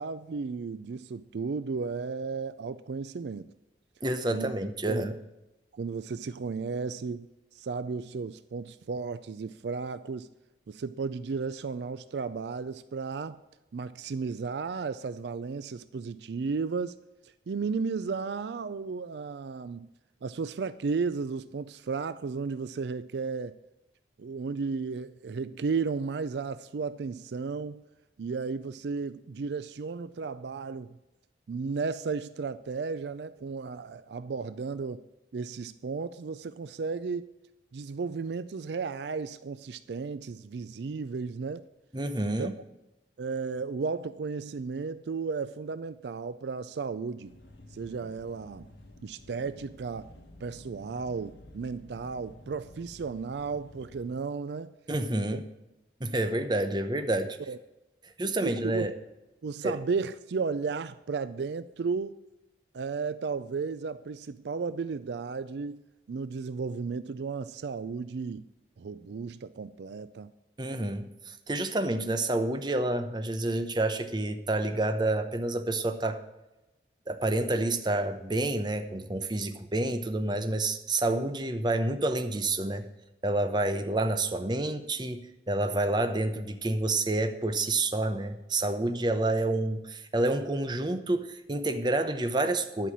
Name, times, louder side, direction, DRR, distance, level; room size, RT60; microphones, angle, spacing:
voice 1, 0.0-3.5 4.3-4.5 4.9-5.1 5.7-7.3 7.5-10.3 10.7-13.4 13.7-17.0 17.5-19.9 20.2-23.6 24.2-27.8 28.2-31.0 31.5-35.0 35.3-37.3 37.7-41.6 42.2-42.5 43.2-47.3 47.7-48.7 49.0-50.1 50.4-54.7 55.1-55.3 57.5-57.6 58.4-58.9 59.4-62.1 62.7-65.8 66.1-68.4 68.8-70.3, right 4 dB, 70° right, 0.4 m, -34 dB
voice 2, 4.0-5.1 41.9-42.5 54.9-55.4 56.0-57.4 58.0-58.9 59.6-59.8 70.6-76.2 77.1-82.9 83.2-85.2 85.5-92.9, right 2 dB, 25° right, 0.8 m, -29 dB
sound 1, 47.3-54.2, left 1 dB, 80° left, 1.5 m, -51 dB
11.0 x 5.7 x 8.6 m
head